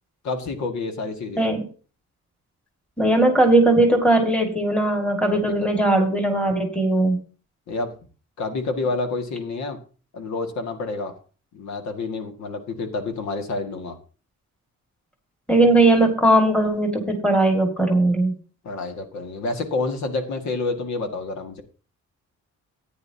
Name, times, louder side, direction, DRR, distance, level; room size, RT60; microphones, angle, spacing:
voice 1, 0.2-1.5 5.3-5.7 7.7-7.9 8.4-9.8 10.1-11.1 11.5-14.0 18.6-21.6, left 3 dB, 70° left, 5 dB, 2.0 m, -28 dB
voice 2, 3.0-7.2 15.5-18.3, right 2 dB, 5° left, 3 dB, 2.1 m, -19 dB
14.5 x 9.7 x 2.8 m, 0.37 s
cardioid pair, 155°, 30 cm